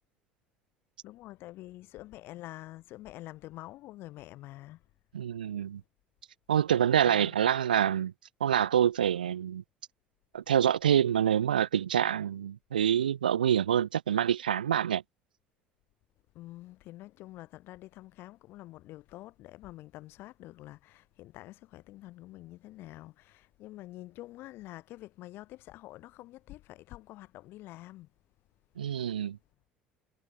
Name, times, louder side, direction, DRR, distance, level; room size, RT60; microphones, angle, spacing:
voice 1, 1.0-4.8 7.0-7.3 16.3-28.1, left 17 dB, 50° left, 6.8 m, -47 dB
voice 2, 5.1-5.8 6.5-8.1 8.4-9.6 10.3-15.0 28.8-29.4, right 9 dB, 75° right, 0.6 m, -26 dB
figure-of-eight pair, 60°, 5 cm